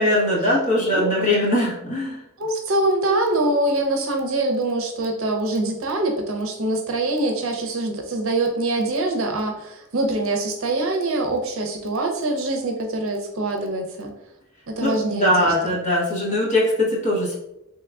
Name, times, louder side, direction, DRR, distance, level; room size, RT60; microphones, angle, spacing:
voice 1, 0.0-2.2 14.8-17.4, left 1 dB, 35° left, -5 dB, 1.0 m, -21 dB
voice 2, 2.4-14.1 14.7-15.7, right 2 dB, 70° right, 2 dB, 0.6 m, -24 dB
3.5 x 3.0 x 2.3 m, 0.85 s
head